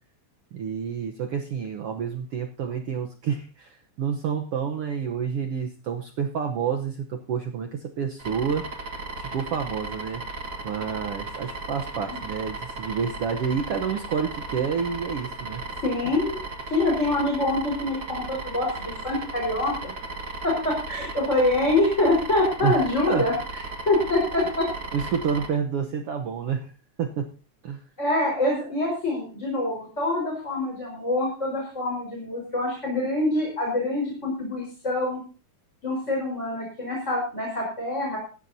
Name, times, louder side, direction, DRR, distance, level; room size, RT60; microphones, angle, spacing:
voice 1, 0.5-8.7 9.2-10.2 10.6-15.6 22.6-23.3 24.9-26.7 27.0-27.3 27.6-27.8, right 7 dB, 60° right, 4 dB, 1.7 m, -29 dB
sound 1, 8.2-25.5, right 2 dB, 35° right, 2.2 m, -36 dB
voice 2, 15.8-16.4 16.7-19.9 20.4-23.3 23.9-24.7 28.0-35.2 35.8-38.2, left 2 dB, 20° left, -2 dB, 4.8 m, -25 dB
18.0 x 14.5 x 2.8 m, 0.37 s
omnidirectional pair, 3.4 m